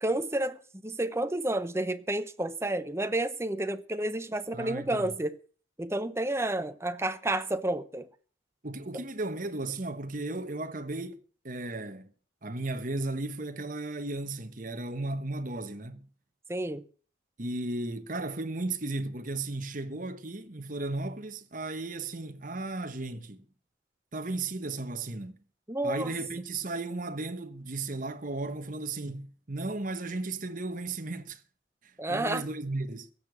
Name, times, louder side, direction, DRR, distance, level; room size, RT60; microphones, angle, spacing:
voice 1, 0.0-5.4 5.8-8.1 16.5-16.8 25.7-26.1 32.0-32.5, right 1 dB, 15° right, 0.8 m, -30 dB
voice 2, 4.5-5.1 8.6-11.2 11.4-12.1 12.4-16.1 17.4-23.4 24.1-25.4 25.8-31.4 31.8-33.3, right 2 dB, 40° right, 1.2 m, -35 dB
16.0 x 6.7 x 8.3 m
head